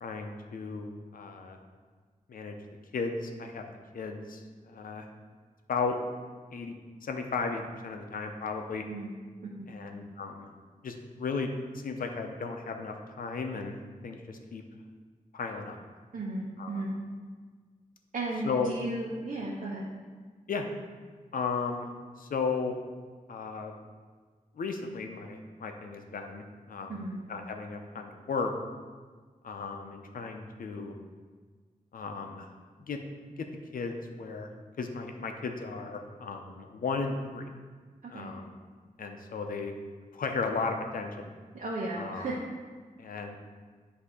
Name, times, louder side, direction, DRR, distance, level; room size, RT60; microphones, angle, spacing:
voice 1, 0.0-1.6 2.3-2.6 2.9-5.1 5.7-6.0 6.5-6.7 7.0-8.8 9.7-10.5 10.8-11.5 11.7-13.8 14.0-14.6 15.3-15.8 16.6-16.8 18.4-18.7 20.5-20.7 21.3-21.9 22.2-22.7 23.3-23.7 24.6-27.0 27.3-28.5 29.4-31.0 31.9-32.5 32.8-33.0 33.4-33.5 33.7-34.5 34.8-37.5 38.1-38.6 39.0-39.7 40.1-41.3 42.0-42.3 43.0-43.4, left 4 dB, 85° left, 4 dB, 0.6 m, -35 dB
voice 2, 16.1-16.9 18.1-19.9 26.9-27.2 38.0-38.3 41.5-42.3, right 2 dB, 65° right, -5 dB, 0.9 m, -35 dB
8.2 x 2.8 x 4.9 m, 1.5 s
wide cardioid pair, 75°, 14 cm